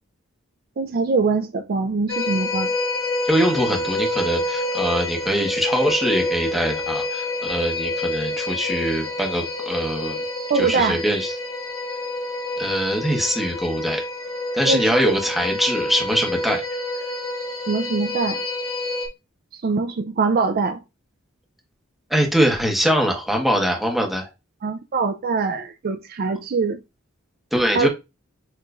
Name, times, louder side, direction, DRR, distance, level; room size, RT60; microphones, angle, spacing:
voice 1, 0.8-2.7 10.5-11.0 14.7-15.1 17.7-18.4 19.5-20.8 24.6-26.8 27.7-27.9, right 4 dB, 45° right, 0.4 m, -23 dB
sound 1, 2.1-19.1, left 2 dB, 80° left, 1.4 m, -27 dB
voice 2, 3.2-10.2 10.6-11.3 12.6-14.0 14.5-16.6 22.1-24.3 27.5-27.9, equal, ahead, 1.3 m, -22 dB
6.9 x 3.0 x 2.5 m
head